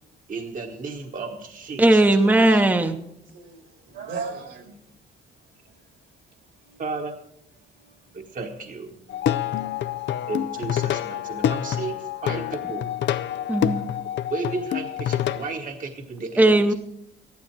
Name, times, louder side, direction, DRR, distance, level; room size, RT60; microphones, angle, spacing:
voice 1, 0.3-2.6 6.8-7.1 8.1-8.9 10.3-12.9 14.3-16.6, right 3 dB, 40° right, 1.3 m, -33 dB
voice 2, 1.8-3.0 13.5-13.8 16.4-16.7, right 2 dB, 10° right, 0.8 m, -17 dB
voice 3, 3.3-4.8 5.6-5.9 6.6-6.8 7.6-8.4 8.9-10.3 10.7-11.8 12.1-12.2 16.0-16.1, right 5 dB, 75° right, 2.7 m, -41 dB
Plucked string instrument, 9.1-15.5, left 10 dB, 65° left, 0.5 m, -27 dB
14.0 x 11.5 x 4.6 m
cardioid pair, 90°, 20 cm